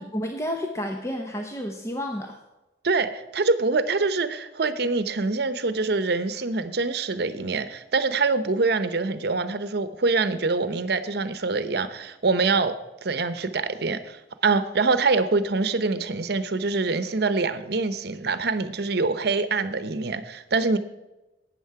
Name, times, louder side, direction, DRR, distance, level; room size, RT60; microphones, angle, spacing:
voice 1, 0.0-2.4, equal, 15° left, 3 dB, 0.8 m, -31 dB
voice 2, 2.8-12.7 13.0-20.8, right 3 dB, 65° right, 12 dB, 0.8 m, -25 dB
12.5 x 8.9 x 4.8 m, 1.0 s
head